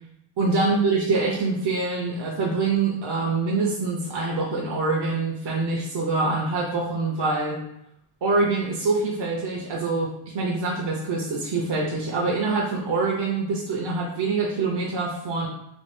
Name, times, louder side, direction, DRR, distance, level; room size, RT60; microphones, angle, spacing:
voice 1, 0.4-7.6 8.2-15.5, right 3 dB, 60° right, -2 dB, 0.6 m, -25 dB
3.1 x 2.3 x 3.1 m, 0.76 s
wide cardioid pair, 145°, 48 cm